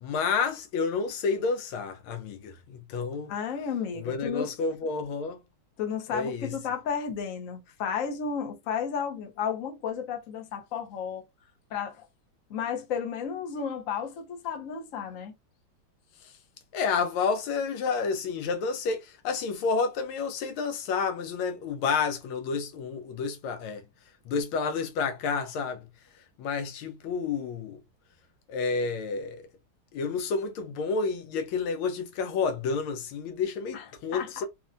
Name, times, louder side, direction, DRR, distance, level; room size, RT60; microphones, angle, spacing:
voice 1, 0.0-3.3 3.9-5.4 6.1-6.5 16.2-16.3 16.7-23.8 24.2-25.9 26.4-27.8 28.5-29.4 29.9-34.5, left 5 dB, 85° left, 1.6 m, -30 dB
voice 2, 3.3-4.5 5.8-11.2 11.7-12.1 12.5-15.3 33.7-33.8 34.1-34.4, left 7 dB, 60° left, 0.9 m, -33 dB
4.0 x 2.1 x 2.5 m
omnidirectional pair, 2.2 m